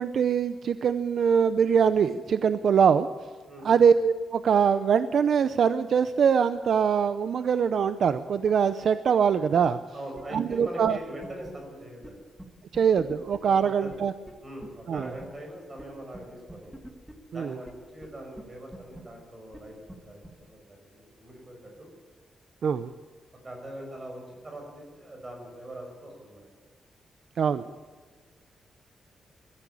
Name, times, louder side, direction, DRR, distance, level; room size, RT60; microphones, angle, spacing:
voice 1, 0.0-3.1 3.6-9.8 10.3-11.0 12.7-14.1 14.9-15.1 17.3-17.6 22.6-22.9 27.4-27.6, right 7 dB, 55° right, 11 dB, 0.7 m, -23 dB
voice 2, 3.5-3.9 9.9-12.2 13.4-13.5 13.8-13.9 14.4-16.8 17.3-21.9 23.4-26.5 28.1-28.2, right 1 dB, 20° right, 2 dB, 6.2 m, -42 dB
sound 1, 10.2-10.3 10.5-10.6 10.9-11.0 11.2-11.5 12.0-12.1 12.4-12.5 12.7-13.4 13.9-14.0 14.3-14.4 14.6-14.7 15.0-15.3 15.8-15.9 16.1-16.2 16.5-17.1 17.7-17.8 18.0-18.1 18.4-18.5 18.7-19.0 19.5-19.6 19.9-20.0 20.2-20.3, right 1 dB, 5° right, 2.3 m, -43 dB
22.5 x 14.0 x 8.5 m, 1.4 s
wide cardioid pair, 175°, 0 cm